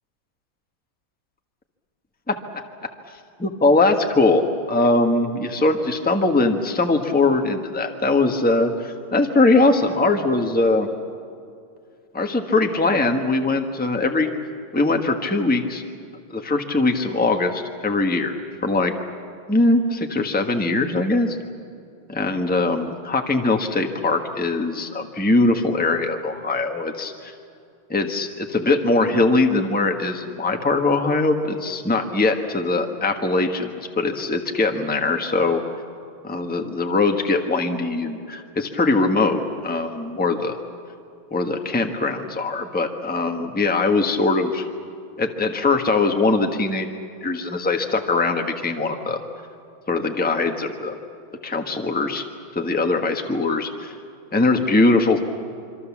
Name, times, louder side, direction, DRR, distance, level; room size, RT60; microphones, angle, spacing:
voice 1, 3.4-10.9 12.1-14.3 14.7-15.8 16.3-18.3 18.6-18.9 19.5-21.4 22.1-27.3 27.9-33.7 34.0-35.6 36.2-40.6 41.3-44.6 45.2-46.9 47.2-49.2 49.9-51.0 51.4-52.2 52.5-53.9 54.3-55.2, left 3 dB, 5° left, 4 dB, 1.1 m, -21 dB
26.0 x 25.0 x 7.4 m, 2.5 s
omnidirectional pair, 2.2 m